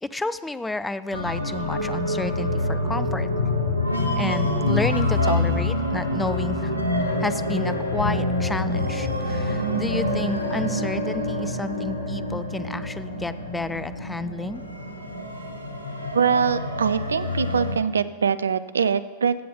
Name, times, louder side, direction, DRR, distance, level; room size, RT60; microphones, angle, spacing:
voice 1, 0.0-3.3 4.2-6.7 7.0-14.6, left 2 dB, 10° left, 14 dB, 0.4 m, -31 dB
sound 1, 1.1-17.8, left 1 dB, 80° left, 1.1 m, -26 dB
voice 2, 16.1-19.4, right 6 dB, 70° right, 14 dB, 0.4 m, -23 dB
15.0 x 7.5 x 3.8 m, 1.3 s
figure-of-eight pair, 90°, 0 cm